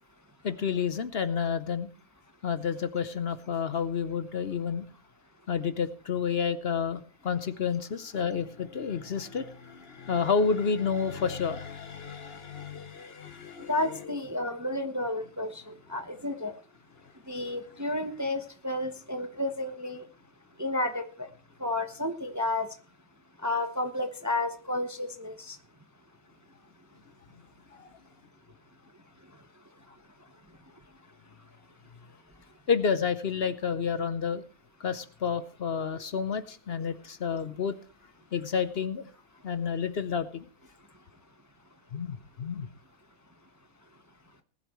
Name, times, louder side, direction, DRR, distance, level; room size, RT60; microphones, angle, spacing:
voice 1, 0.4-1.9 2.4-4.8 5.5-14.1 27.7-27.9 32.7-34.4 34.8-37.8 38.3-39.1 39.4-40.5 41.9-42.7, left 6 dB, 50° left, 12 dB, 0.9 m, -30 dB
voice 2, 13.7-16.5 17.3-20.0 20.6-21.3 21.6-22.7 23.4-25.6, left 2 dB, 15° right, 6 dB, 0.9 m, -31 dB
20.0 x 11.5 x 3.1 m, 0.36 s
omnidirectional pair, 1.5 m